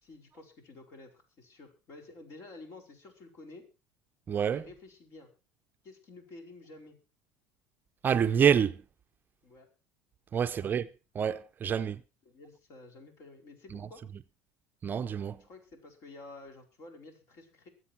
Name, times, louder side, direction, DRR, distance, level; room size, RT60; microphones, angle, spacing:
voice 1, 0.0-3.7 4.5-5.3 5.8-7.0 9.4-9.7 10.6-10.7 12.2-14.0 15.4-17.7, left 2 dB, 50° left, 4.8 m, -51 dB
voice 2, 4.3-4.6 8.0-8.8 10.3-10.9 11.1-12.0 13.7-13.9 14.8-15.4, right 8 dB, 30° right, 0.6 m, -27 dB
23.0 x 8.1 x 4.3 m
supercardioid pair, 120°, 6 cm